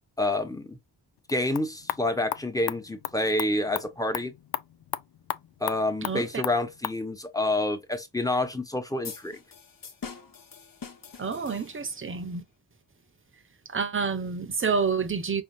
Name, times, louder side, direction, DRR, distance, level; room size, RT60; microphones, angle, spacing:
voice 1, 0.2-0.8 1.3-4.3 5.6-9.4, left 2 dB, 10° left, 1.0 m, -28 dB
sound 1, 1.2-7.0, left 11 dB, 70° left, 0.5 m, -37 dB
voice 2, 6.0-6.4 11.2-12.4 13.7-15.4, right 5 dB, 30° right, 0.9 m, -28 dB
sound 2, 9.0-12.1, left 5 dB, 55° left, 1.1 m, -44 dB
5.6 x 2.8 x 2.6 m
wide cardioid pair, 130°, 41 cm